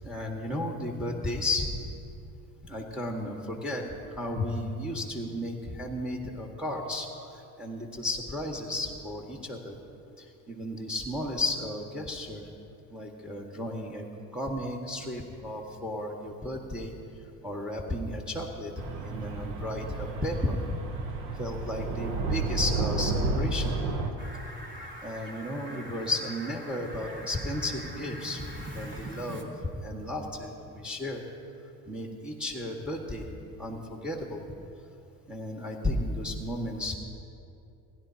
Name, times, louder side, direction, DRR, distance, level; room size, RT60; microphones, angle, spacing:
voice 1, 0.0-1.8 2.6-9.8 10.2-12.4 12.9-14.1 14.3-16.9 17.4-20.6 21.3-23.7 25.0-29.5 29.8-31.2 31.9-33.3 33.6-34.6 35.3-37.0, left 1 dB, ahead, 1 dB, 1.7 m, -34 dB
sound 1, 18.8-24.1, right 3 dB, 70° right, 1.5 m, -31 dB
Fowl, 24.2-29.4, equal, 25° right, 2.1 m, -43 dB
21.0 x 10.5 x 2.9 m, 2.7 s
hypercardioid pair, 65°, 45 cm